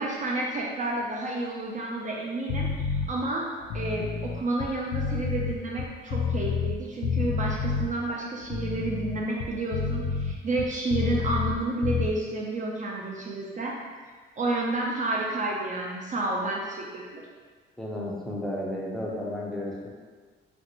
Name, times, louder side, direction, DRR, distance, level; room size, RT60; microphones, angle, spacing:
voice 1, 0.0-3.5 3.7-13.7 14.4-17.2, right 2 dB, 40° right, -2 dB, 0.5 m, -30 dB
sound 1, 2.5-3.1 3.6-6.8 7.0-7.9 8.4-11.6 11.8-12.1, left 6 dB, 90° left, 0.4 m, -29 dB
voice 2, 17.8-19.9, left 1 dB, ahead, -4 dB, 0.6 m, -33 dB
3.1 x 2.5 x 2.9 m, 1.5 s
cardioid pair, 90°, 20 cm